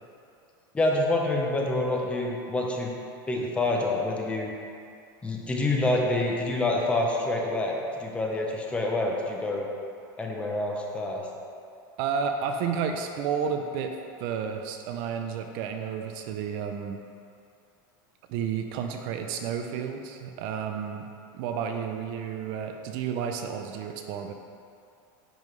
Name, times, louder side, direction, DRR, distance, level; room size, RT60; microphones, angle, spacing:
voice 1, 0.7-2.9 3.3-4.5 5.2-9.7 10.2-11.2, left 2 dB, 10° left, 0 dB, 0.6 m, -27 dB
voice 2, 12.0-17.0 18.3-21.1 21.3-24.3, right 7 dB, 45° right, 5 dB, 0.4 m, -31 dB
10.0 x 3.7 x 3.1 m, 2.5 s
supercardioid pair, 160°, 11 cm